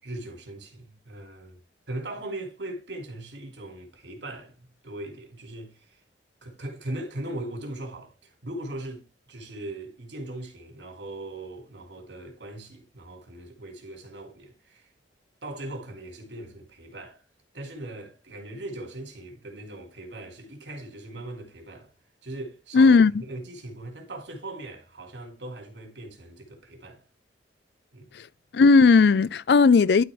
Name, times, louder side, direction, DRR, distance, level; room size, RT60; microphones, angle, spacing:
voice 1, 0.0-1.6 1.9-6.0 6.4-14.9 15.4-17.2 17.5-21.9 22.2-27.0 27.9-28.1, right 1 dB, 80° right, 2.7 m, -39 dB
voice 2, 22.7-23.1 28.5-30.0, left 4 dB, 65° left, 0.4 m, -16 dB
12.0 x 4.2 x 3.5 m
head